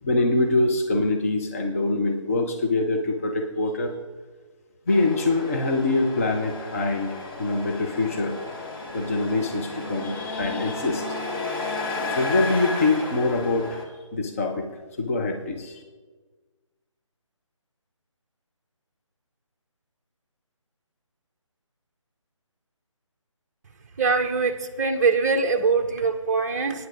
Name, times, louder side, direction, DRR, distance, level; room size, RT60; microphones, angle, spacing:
voice 1, 0.0-3.9 4.9-8.6 8.9-11.1 12.1-14.7 15.0-15.8, left 2 dB, 25° left, 4 dB, 0.7 m, -24 dB
Truck, 4.9-13.8, left 2 dB, 45° left, 2.1 m, -33 dB
voice 2, 24.0-26.9, right 4 dB, 30° right, 3 dB, 0.6 m, -23 dB
23.5 x 9.5 x 2.5 m, 1.3 s
figure-of-eight pair, 150°, 17 cm